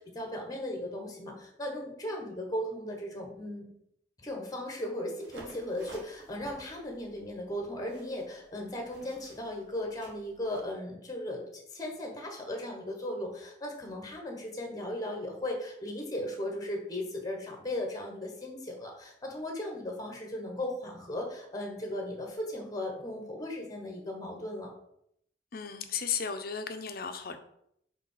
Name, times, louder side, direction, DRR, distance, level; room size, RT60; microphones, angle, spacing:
voice 1, 0.0-3.7 4.2-24.7, left 1 dB, 20° left, 1 dB, 1.2 m, -37 dB
sound 1, 5.2-10.7, right 2 dB, 90° right, 1.6 m, -53 dB
voice 2, 25.5-27.4, left 7 dB, 55° left, 8 dB, 0.7 m, -35 dB
5.0 x 3.9 x 5.6 m, 0.73 s
head